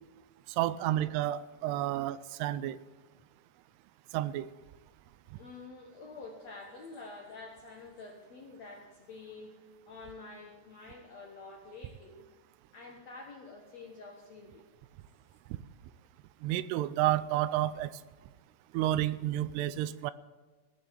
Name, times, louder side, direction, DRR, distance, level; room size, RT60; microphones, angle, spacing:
voice 1, 0.6-2.8 4.1-4.5 16.4-17.9 18.7-20.1, right 13 dB, 85° right, 16 dB, 2.6 m, -30 dB
voice 2, 5.4-9.5 9.9-12.3 12.7-14.7, left 3 dB, 65° left, 1 dB, 1.7 m, -48 dB
17.0 x 6.9 x 8.8 m, 1.4 s
omnidirectional pair, 4.8 m